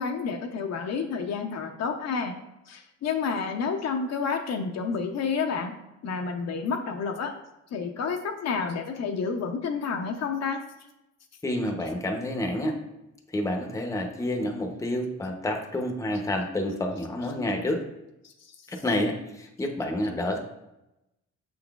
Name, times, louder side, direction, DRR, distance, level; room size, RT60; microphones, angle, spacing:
voice 1, 0.0-2.3 2.7-5.7 6.0-7.3 7.7-10.6 18.2-18.6, left 5 dB, 60° left, 4 dB, 0.6 m, -30 dB
voice 2, 11.4-12.8 13.3-17.8 18.7-20.4, left 1 dB, 10° left, 2 dB, 0.6 m, -29 dB
5.9 x 3.8 x 2.3 m, 0.91 s
cardioid pair, 90°, 30 cm